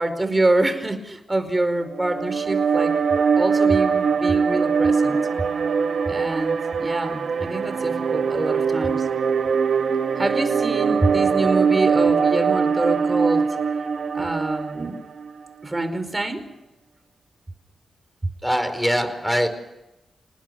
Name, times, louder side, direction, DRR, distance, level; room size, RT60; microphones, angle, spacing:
voice 1, 0.0-5.2 6.1-9.1 10.1-13.5 14.1-15.0 15.6-16.5, right 2 dB, 25° right, 10 dB, 4.8 m, -26 dB
sound 1, 1.9-15.3, right 6 dB, 65° right, 1.6 m, -22 dB
voice 2, 18.4-19.5, equal, ahead, 8 dB, 4.8 m, -22 dB
28.0 x 20.0 x 7.1 m, 0.93 s
cardioid pair, 55°, 0 cm